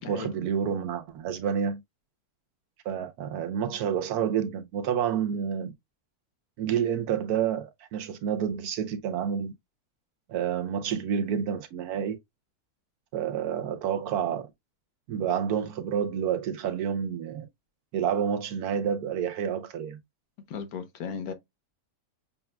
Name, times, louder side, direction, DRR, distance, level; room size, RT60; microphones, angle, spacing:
voice 1, 0.1-1.8 2.8-5.7 6.6-9.5 10.3-12.2 13.1-14.5 15.1-17.5 17.9-20.0, right 8 dB, 80° right, 1.1 m, -29 dB
voice 2, 20.5-21.3, left 6 dB, 75° left, 1.2 m, -36 dB
6.8 x 2.3 x 2.2 m
omnidirectional pair, 1.6 m